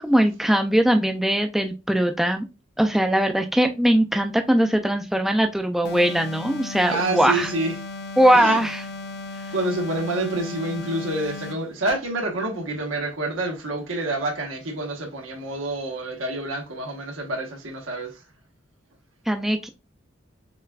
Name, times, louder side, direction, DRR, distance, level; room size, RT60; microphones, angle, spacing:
voice 1, 0.0-2.5 2.8-7.5 8.2-8.8 19.3-19.7, right 1 dB, ahead, 0.3 m, -20 dB
sound 1, 5.8-11.7, left 3 dB, 55° left, 0.5 m, -36 dB
voice 2, 6.9-7.8 8.3-8.7 9.5-18.2, right 2 dB, 85° right, 1.2 m, -28 dB
6.4 x 2.4 x 2.2 m
head